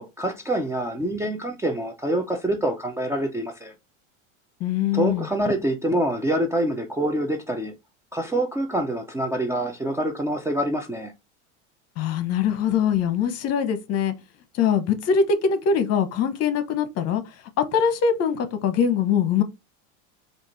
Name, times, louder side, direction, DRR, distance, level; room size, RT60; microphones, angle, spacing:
voice 1, 0.0-3.7 4.9-7.8 8.1-11.1, right 1 dB, 10° right, 0.5 m, -26 dB
voice 2, 4.6-5.3 12.0-14.1 14.5-17.2 17.6-19.4, left 7 dB, 40° left, 1.0 m, -22 dB
4.6 x 2.5 x 4.0 m
supercardioid pair, 130°, 37 cm